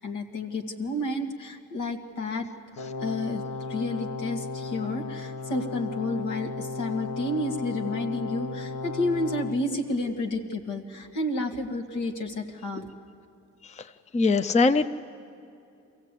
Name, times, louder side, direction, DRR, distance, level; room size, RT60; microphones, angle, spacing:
voice 1, 0.0-2.5 3.0-3.4 3.7-12.9, left 2 dB, 80° left, 3 dB, 2.0 m, -30 dB
Brass instrument, 2.7-9.6, left 4 dB, 55° left, 1.2 m, -35 dB
voice 2, 14.1-14.9, left 3 dB, 25° left, 11 dB, 0.6 m, -21 dB
23.5 x 16.0 x 8.3 m, 2.6 s
cardioid pair, 90°, 30 cm